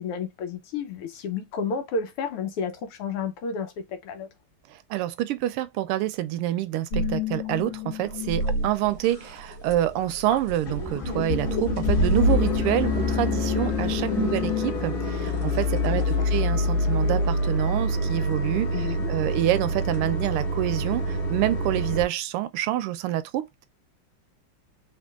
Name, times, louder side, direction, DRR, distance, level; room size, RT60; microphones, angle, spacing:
voice 1, 0.0-4.3 14.1-14.4 16.0-16.3 18.7-19.1, left 5 dB, 85° left, 1.9 m, -31 dB
voice 2, 4.7-23.7, right 13 dB, 85° right, 1.5 m, -27 dB
sound 1, 6.9-9.2 9.5-14.7, left 6 dB, 70° left, 2.8 m, -30 dB
sound 2, 8.4-8.5 9.0-9.4 9.7-9.8 10.1-10.2 10.5-22.0, left 1 dB, 40° left, 2.5 m, -26 dB
5.1 x 2.9 x 2.3 m
omnidirectional pair, 2.4 m